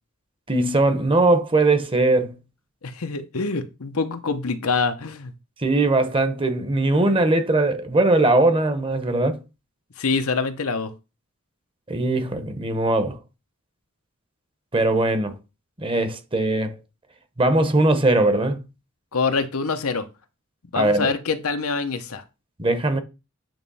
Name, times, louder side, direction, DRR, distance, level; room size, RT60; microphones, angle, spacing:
voice 1, 0.5-2.4 5.6-9.4 11.9-13.2 14.7-15.3 15.8-16.8 17.4-18.6 20.7-21.1 22.6-23.0, right 2 dB, 25° right, 1.0 m, -20 dB
voice 2, 2.8-5.3 10.0-10.9 19.1-20.1 20.7-22.2, left 4 dB, 90° left, 0.9 m, -25 dB
8.9 x 3.1 x 5.5 m
head